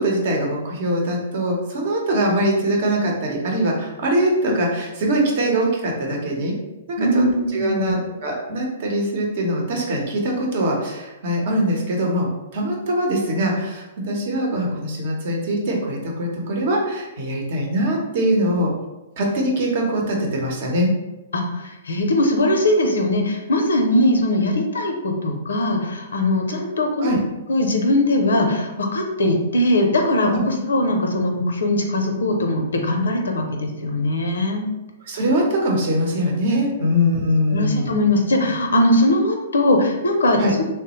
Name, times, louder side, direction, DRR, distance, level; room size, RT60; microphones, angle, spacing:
voice 1, 0.0-6.5 6.9-7.3 7.5-18.7 19.2-20.9 27.0-27.2 30.3-30.4 35.1-37.9 40.4-40.5, equal, 55° right, -1 dB, 0.8 m, -22 dB
voice 2, 7.0-8.0 21.3-27.2 27.5-34.7 37.5-40.4, left 1 dB, 85° left, 3 dB, 0.5 m, -20 dB
3.1 x 2.1 x 2.9 m, 1.0 s
hypercardioid pair, 135°, 0 cm